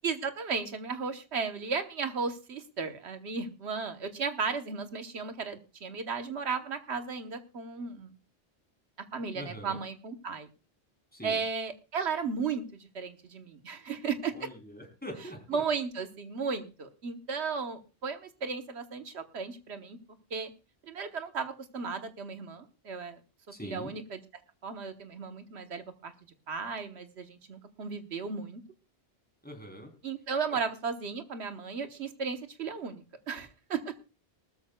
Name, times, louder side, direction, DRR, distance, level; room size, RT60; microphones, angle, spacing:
voice 1, 0.0-8.1 9.1-10.5 11.2-14.5 15.5-20.0 20.3-20.5 20.8-23.2 23.6-24.2 24.6-26.1 26.5-28.6 30.0-33.9, right 5 dB, 80° right, 8 dB, 1.4 m, -35 dB
voice 2, 9.3-9.8 11.1-11.4 14.3-15.6 23.5-23.9 29.4-29.9 30.5-30.6, equal, 10° left, 2 dB, 3.4 m, -43 dB
20.0 x 13.0 x 2.3 m, 0.32 s
omnidirectional pair, 1.1 m